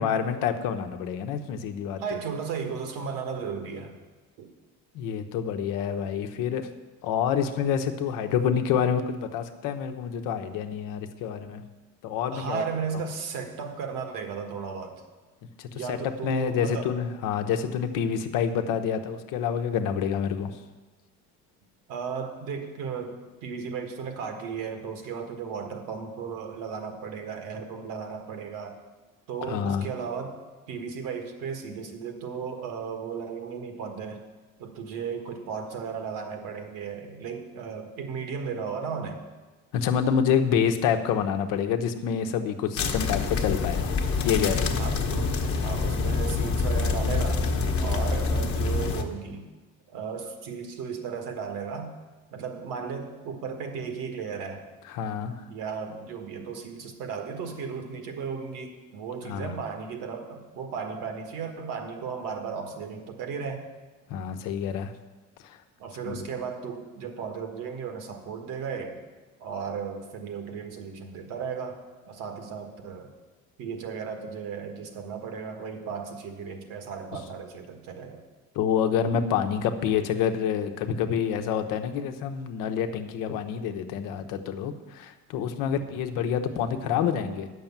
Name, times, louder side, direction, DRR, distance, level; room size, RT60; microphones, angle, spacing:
voice 1, 0.0-2.0 4.9-6.7 7.0-11.6 12.0-12.6 15.6-16.0 16.2-20.5 29.4-29.9 39.7-44.0 44.2-44.7 54.9-55.3 59.3-59.6 64.1-64.9 65.4-65.6 66.0-66.2 78.5-87.5, left 8 dB, 75° left, 7 dB, 1.0 m, -27 dB
voice 2, 2.0-4.0 4.4-4.5 12.3-15.0 15.7-16.9 21.9-28.8 29.3-30.4 30.7-34.2 34.6-39.2 44.8-47.5 47.8-49.5 49.9-51.9 52.3-54.7 55.5-63.7 65.8-69.0 69.4-73.1 73.6-78.2, right 6 dB, 75° right, 5 dB, 1.7 m, -35 dB
sound 1, 42.8-49.0, left 4 dB, 45° left, 1.1 m, -26 dB
9.2 x 6.5 x 7.3 m, 1.2 s
cardioid pair, 125°, 32 cm